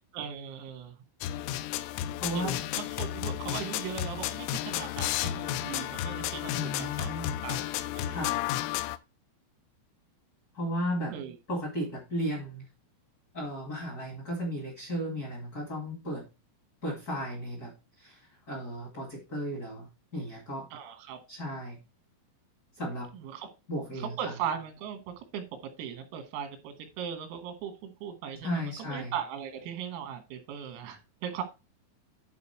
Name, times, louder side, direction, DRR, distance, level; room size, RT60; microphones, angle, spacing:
voice 1, 0.1-0.9 2.3-8.2 11.1-11.4 20.7-21.2 23.1-23.5 24.0-31.4, right 8 dB, 90° right, 7 dB, 4.1 m, -38 dB
sound 1, 1.2-9.0, left 13 dB, 85° left, 3.3 m, -33 dB
voice 2, 2.2-2.6 6.5-7.4 8.1-8.4 10.5-11.1 11.5-12.6 13.3-16.2 16.8-17.7 18.0-18.2 18.5-19.9 20.1-20.7 21.3-21.8 22.8-23.1 23.7-24.3 28.4-29.1, equal, 65° left, -1 dB, 0.9 m, -34 dB
10.5 x 4.3 x 4.3 m, 0.27 s
omnidirectional pair, 6.0 m